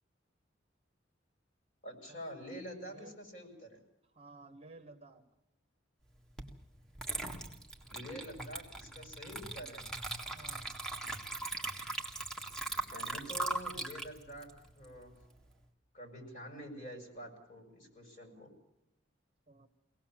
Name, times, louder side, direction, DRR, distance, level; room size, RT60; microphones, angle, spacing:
voice 1, 1.8-3.8 7.9-9.8 12.7-15.1 15.9-18.5, equal, 40° left, 4 dB, 6.0 m, -47 dB
voice 2, 2.8-3.2 4.1-5.2 10.3-10.7 19.5-19.7, right 3 dB, 30° right, 5 dB, 1.4 m, -54 dB
Water / Liquid, 6.4-6.5 6.9-15.5, right 2 dB, 5° left, 1.7 m, -40 dB
24.0 x 18.0 x 7.4 m, 0.88 s
head